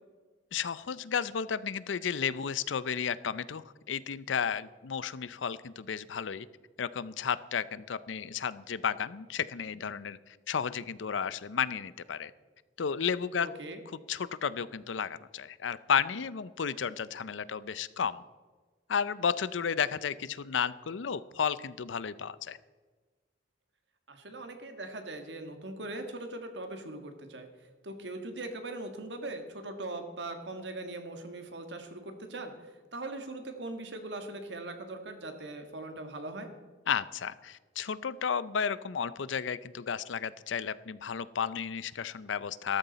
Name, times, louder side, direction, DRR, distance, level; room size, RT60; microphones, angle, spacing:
voice 1, 0.5-6.5 6.8-10.2 10.5-12.3 12.8-13.5 14.1-18.2 18.9-22.6 36.9-42.8, left 7 dB, 90° left, 17 dB, 0.5 m, -33 dB
voice 2, 13.4-13.8 24.1-27.5 27.8-36.5, right 2 dB, 65° right, 6 dB, 1.7 m, -40 dB
13.5 x 13.0 x 4.1 m, 1.4 s
head